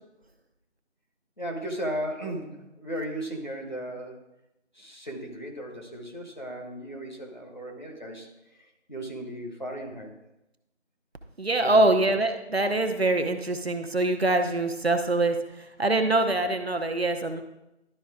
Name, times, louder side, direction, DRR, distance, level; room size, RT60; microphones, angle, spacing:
voice 1, 1.4-4.2 4.7-8.3 8.6-10.1 11.6-11.9, right 1 dB, 40° left, 0 dB, 1.4 m, -36 dB
voice 2, 11.4-15.4 15.8-17.4, right 2 dB, 60° right, 6 dB, 0.8 m, -24 dB
12.0 x 4.4 x 3.6 m, 0.91 s
figure-of-eight pair, 180°, 35 cm